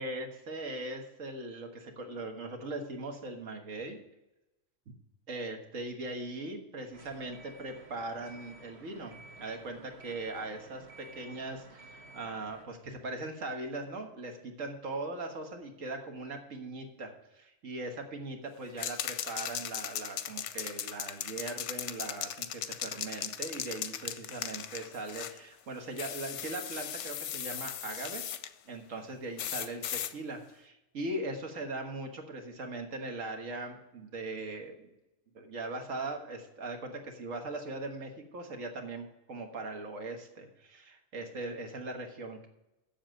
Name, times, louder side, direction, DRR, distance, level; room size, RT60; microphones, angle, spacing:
voice 1, 0.0-4.0 5.3-28.2 28.6-34.9 35.3-42.5, right 2 dB, 65° right, 3 dB, 1.8 m, -40 dB
sound 1, 6.9-12.6, right 2 dB, 50° right, 1.5 m, -52 dB
sound 2, 18.8-25.4 26.0-28.5 29.4-30.1, left 10 dB, 65° left, 0.9 m, -38 dB
7.3 x 7.3 x 7.6 m, 0.93 s
omnidirectional pair, 1.5 m